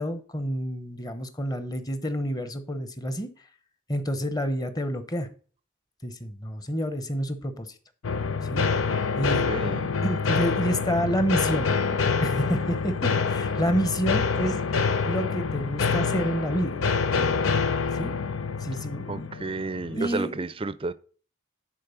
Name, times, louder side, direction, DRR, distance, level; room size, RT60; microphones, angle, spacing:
voice 1, 0.0-3.3 3.9-5.3 6.0-7.7 8.5-8.7 9.2-9.5 10.0-11.7 12.2-14.6 15.0-16.8 18.0-18.2 18.6-19.3 19.9-20.4, equal, 20° left, 1.0 m, -28 dB
sound 1, 8.0-20.0, left 5 dB, 85° left, 0.6 m, -26 dB
voice 2, 9.5-9.9 19.1-20.9, right 3 dB, 25° right, 0.5 m, -31 dB
10.0 x 4.3 x 5.6 m
head